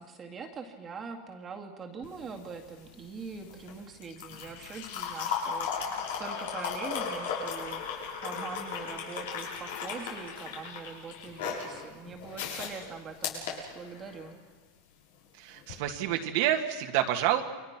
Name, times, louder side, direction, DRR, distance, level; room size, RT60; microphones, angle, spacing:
voice 1, 0.0-14.4, right 5 dB, 20° right, 2 dB, 2.2 m, -43 dB
sound 1, 2.0-14.3 15.6-15.8, left 6 dB, 75° left, 6.9 m, -36 dB
voice 2, 15.4-17.4, right 12 dB, 55° right, 3 dB, 2.0 m, -28 dB
29.5 x 24.0 x 6.1 m, 1.3 s
supercardioid pair, 160°, 0 cm